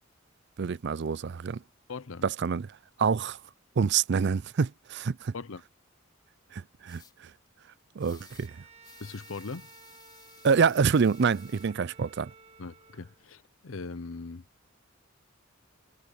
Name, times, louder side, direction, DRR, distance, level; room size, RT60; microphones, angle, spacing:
voice 1, 0.6-1.6 2.2-2.7 3.0-3.4 3.8-5.3 6.5-7.0 8.0-8.5 10.4-12.3, right 6 dB, 55° right, 0.4 m, -26 dB
voice 2, 1.9-2.2 5.3-5.6 9.0-9.7 12.6-14.5, left 4 dB, 80° left, 0.8 m, -40 dB
sound 1, 6.9-7.1 8.0-8.5 8.8-11.7, left 6 dB, 20° left, 3.4 m, -56 dB
Bowed string instrument, 8.1-13.3, right 4 dB, 30° right, 1.5 m, -54 dB
head